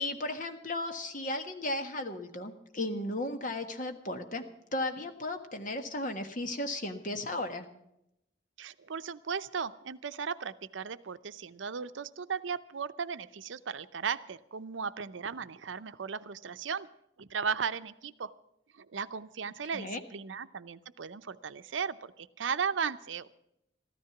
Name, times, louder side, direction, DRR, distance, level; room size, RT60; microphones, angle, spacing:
voice 1, 0.0-4.4 4.7-7.7 19.7-20.0, left 1 dB, 45° left, 6 dB, 1.4 m, -35 dB
voice 2, 8.6-16.9 17.2-18.3 18.8-23.3, right 6 dB, 85° right, 13 dB, 0.6 m, -36 dB
14.0 x 13.5 x 5.9 m, 0.81 s
head